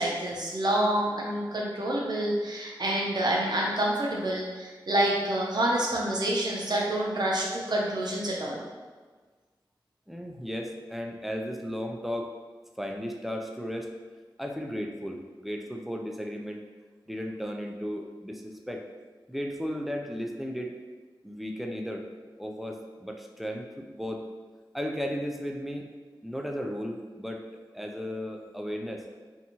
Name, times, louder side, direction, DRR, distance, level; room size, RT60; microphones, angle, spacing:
voice 1, 0.0-8.6, right 1 dB, 55° right, -3 dB, 0.6 m, -27 dB
voice 2, 10.1-12.3 12.8-13.9 14.4-16.6 17.1-18.9 19.3-20.8 21.2-22.1 22.4-24.3 24.7-25.9 26.2-29.0, equal, ahead, 2 dB, 0.3 m, -35 dB
2.6 x 2.3 x 2.9 m, 1.4 s
wide cardioid pair, 55°, 8 cm